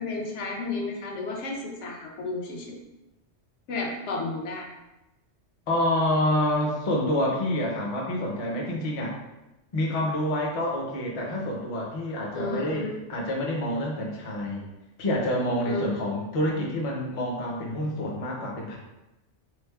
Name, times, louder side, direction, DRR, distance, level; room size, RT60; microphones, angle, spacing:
voice 1, 0.0-2.8 3.7-4.7 12.3-13.1 15.6-15.8, left 3 dB, 75° left, 0 dB, 0.9 m, -32 dB
voice 2, 5.7-9.2 9.7-14.6 15.0-18.8, left 1 dB, 40° left, -1 dB, 0.5 m, -27 dB
3.4 x 3.2 x 2.2 m, 0.97 s
omnidirectional pair, 1.2 m